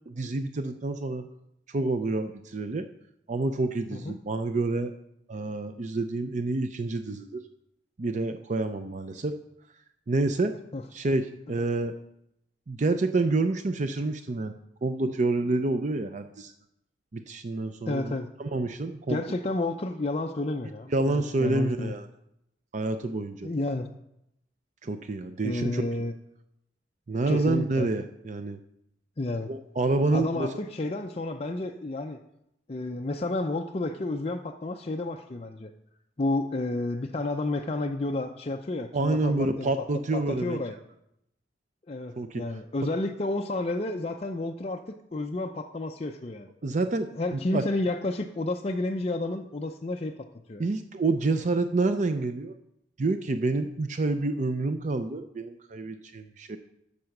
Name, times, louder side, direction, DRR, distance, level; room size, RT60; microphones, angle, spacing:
voice 1, 0.1-1.3 1.7-2.9 3.3-4.9 5.3-7.4 8.0-9.4 10.1-10.5 10.9-11.9 12.7-16.5 17.1-19.2 20.9-22.1 22.7-23.5 24.8-25.8 27.1-28.6 29.5-30.5 38.9-40.6 42.2-42.4 46.6-47.6 50.6-52.5 53.0-56.6, right 2 dB, 40° right, 9 dB, 0.5 m, -28 dB
voice 2, 17.9-18.3 19.1-21.9 23.4-23.9 25.4-26.1 27.3-27.9 29.2-29.5 30.1-32.2 32.7-35.7 36.2-39.7 40.1-40.8 41.9-44.8 45.1-46.5 47.1-50.6, left 2 dB, 35° left, 3 dB, 0.5 m, -31 dB
10.5 x 6.9 x 6.5 m, 0.82 s
head